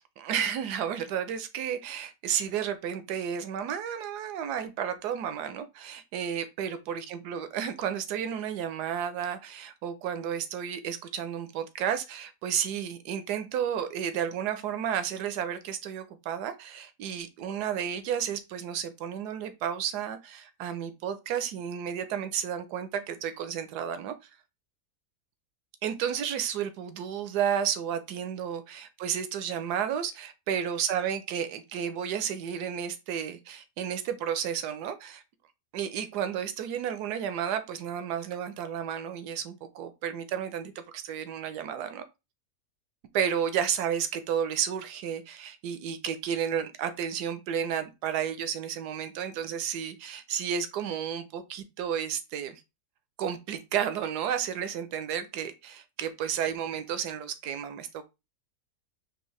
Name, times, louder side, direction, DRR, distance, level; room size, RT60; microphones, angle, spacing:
voice 1, 0.2-24.1 25.8-35.2 35.7-42.0 43.1-52.6 53.2-58.0, right 8 dB, 85° right, 1.2 m, -32 dB
4.6 x 2.9 x 3.1 m
omnidirectional pair, 1.7 m